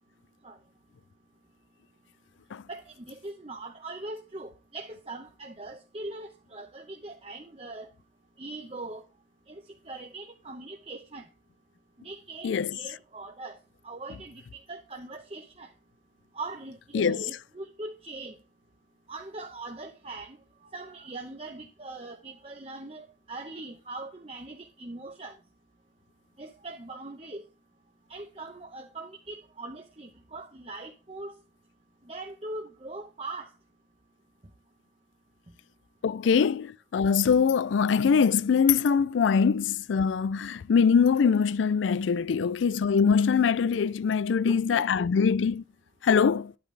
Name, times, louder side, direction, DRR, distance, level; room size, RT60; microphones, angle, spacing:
voice 1, 2.7-7.9 8.4-9.0 9.5-11.2 12.0-13.6 13.8-15.7 16.3-18.4 19.1-20.4 20.7-25.4 26.4-27.4 28.1-31.3 32.1-33.5 44.4-45.1, right 2 dB, 30° right, 0.9 m, -41 dB
voice 2, 36.0-45.6 46.0-46.5, left 6 dB, 90° left, 0.4 m, -23 dB
10.5 x 8.4 x 3.2 m
head